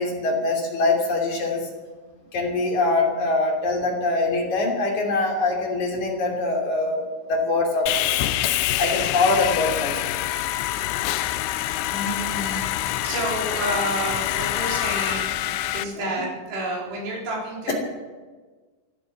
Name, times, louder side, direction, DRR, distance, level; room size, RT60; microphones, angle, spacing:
voice 1, 0.0-1.7 2.3-7.0 7.3-8.1 8.8-10.0 16.0-16.3 17.7-17.8, left 3 dB, 45° left, 0 dB, 4.0 m, -23 dB
Sawing, 7.9-15.8, left 14 dB, 80° left, 2.7 m, -26 dB
voice 2, 11.9-12.8 13.0-15.3 15.7-17.7, right 1 dB, 65° right, -3 dB, 5.9 m, -29 dB
15.5 x 12.5 x 7.3 m, 1.3 s
omnidirectional pair, 5.4 m